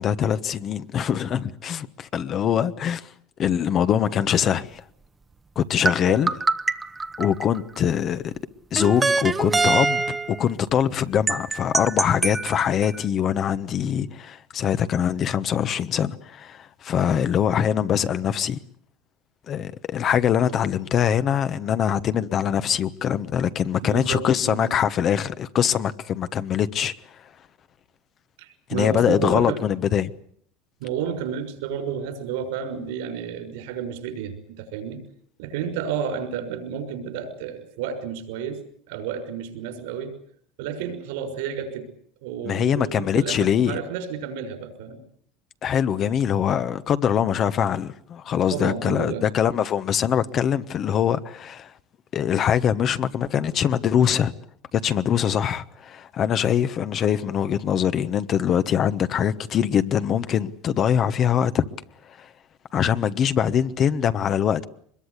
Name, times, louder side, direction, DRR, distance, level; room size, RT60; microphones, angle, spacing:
voice 1, 0.0-3.1 3.4-4.8 5.6-6.3 7.2-8.3 8.7-18.6 19.5-27.2 28.7-30.1 42.4-43.8 45.6-51.7 52.1-54.3 54.7-61.6 62.1-62.3 62.7-64.6, left 9 dB, 45° left, 1.2 m, -23 dB
sound 1, 5.9-7.8 8.8-10.4 11.3-13.0, right 3 dB, 20° right, 1.1 m, -24 dB
voice 2, 23.8-24.8 28.4-29.6 30.8-35.0 35.4-38.6 38.9-40.1 40.6-41.9 42.2-45.0 48.5-49.3, right 7 dB, 80° right, 6.0 m, -31 dB
23.5 x 21.5 x 8.3 m
supercardioid pair, 100°, 0 cm